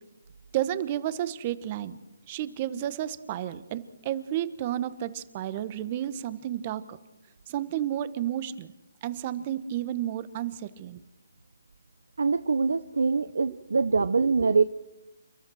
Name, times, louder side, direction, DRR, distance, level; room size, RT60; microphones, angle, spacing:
voice 1, 0.5-2.0 2.3-7.0 7.5-8.7 9.0-11.0 14.4-14.5, right 11 dB, 30° right, 15 dB, 1.2 m, -31 dB
voice 2, 12.2-14.6, right 4 dB, 75° right, 13 dB, 0.8 m, -24 dB
29.5 x 13.5 x 6.4 m, 1.0 s
hypercardioid pair, 155°, 0 cm